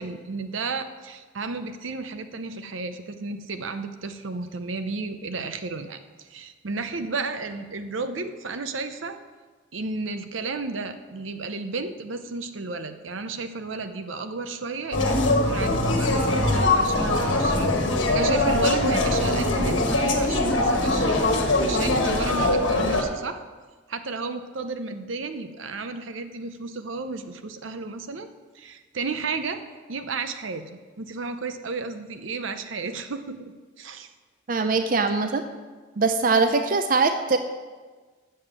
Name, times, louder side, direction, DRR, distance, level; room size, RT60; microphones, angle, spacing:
voice 1, 0.0-9.2 9.7-17.7 18.1-21.2 21.6-23.4 23.9-28.3 28.5-29.6 29.9-34.1, right 3 dB, 85° right, 9 dB, 0.7 m, -33 dB
sound 1, 14.9-23.0, left 2 dB, 75° left, 1.4 m, -22 dB
voice 2, 34.5-35.4 36.0-37.4, right 4 dB, 45° right, 8 dB, 0.5 m, -22 dB
7.8 x 6.9 x 7.3 m, 1.4 s
head